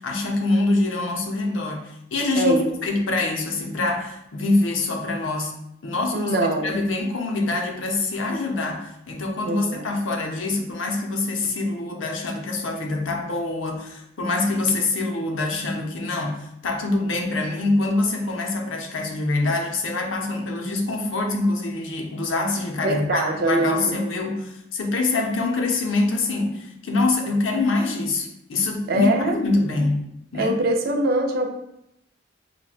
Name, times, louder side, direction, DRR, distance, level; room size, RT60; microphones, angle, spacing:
voice 1, 0.0-5.5 5.8-6.4 6.6-30.0 30.3-30.6, left 2 dB, 80° left, 2 dB, 0.6 m, -25 dB
voice 2, 2.4-2.7 6.1-6.8 9.4-9.8 22.8-24.0 28.9-29.4 30.4-31.5, right 1 dB, 50° right, 3 dB, 0.5 m, -23 dB
5.7 x 2.2 x 2.4 m, 0.80 s
head